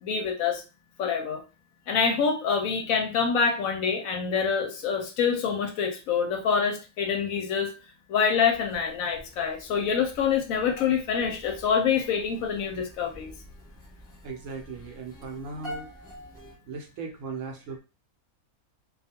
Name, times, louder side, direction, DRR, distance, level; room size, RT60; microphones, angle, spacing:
voice 1, 0.0-0.6 1.0-1.4 1.9-7.7 8.1-13.3, left 6 dB, 70° left, 0.9 m, -26 dB
sound 1, 8.5-16.5, equal, 5° left, 0.9 m, -47 dB
voice 2, 14.2-15.9 16.7-17.8, right 4 dB, 70° right, 0.8 m, -37 dB
2.4 x 2.3 x 2.7 m
omnidirectional pair, 1.6 m